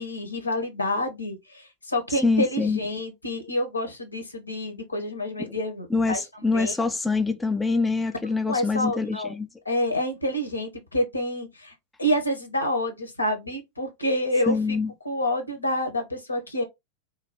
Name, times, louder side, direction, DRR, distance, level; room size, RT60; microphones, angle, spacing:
voice 1, 0.0-6.7 8.5-9.3 9.6-11.7 12.0-14.8 15.0-16.6, left 1 dB, 80° left, 0.8 m, -28 dB
voice 2, 2.1-2.8 5.4-5.5 5.9-9.5 14.5-14.9, left 4 dB, 10° left, 0.3 m, -25 dB
2.5 x 2.3 x 3.2 m
figure-of-eight pair, 90°, 0 cm